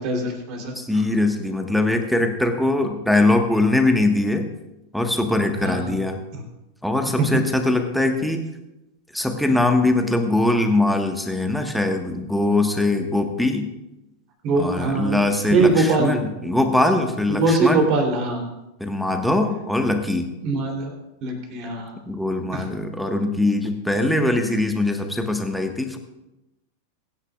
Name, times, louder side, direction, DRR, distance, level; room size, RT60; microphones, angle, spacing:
voice 1, 0.0-0.7 5.6-5.8 6.3-6.4 14.4-15.2 15.5-16.2 17.4-18.4 20.4-20.9 21.2-21.9 22.5-22.6, right 3 dB, 40° right, 2 dB, 3.2 m, -21 dB
voice 2, 0.7-4.5 4.9-6.2 6.8-8.5 9.1-13.7 14.6-17.9 18.8-20.3 22.1-26.0, left 2 dB, ahead, 4 dB, 1.4 m, -21 dB
22.5 x 9.9 x 2.4 m, 0.93 s
figure-of-eight pair, 90°, 0 cm